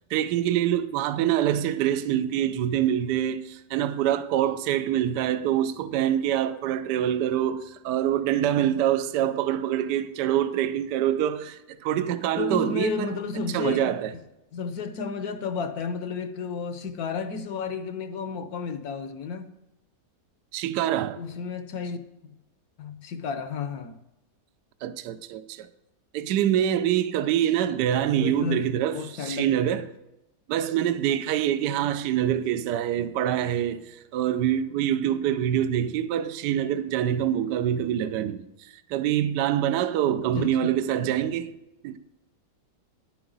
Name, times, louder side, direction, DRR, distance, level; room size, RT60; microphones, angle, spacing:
voice 1, 0.1-13.2 13.5-14.1 20.5-21.2 24.8-25.7 26.1-29.9 30.5-38.5 38.9-41.5 41.8-42.0, right 11 dB, 75° right, 1.2 m, -25 dB
voice 2, 12.4-13.9 14.5-19.5 21.2-22.1 22.8-23.9 28.2-29.5 40.4-40.7, left 5 dB, 65° left, 1.1 m, -32 dB
10.5 x 8.8 x 3.9 m
omnidirectional pair, 2.0 m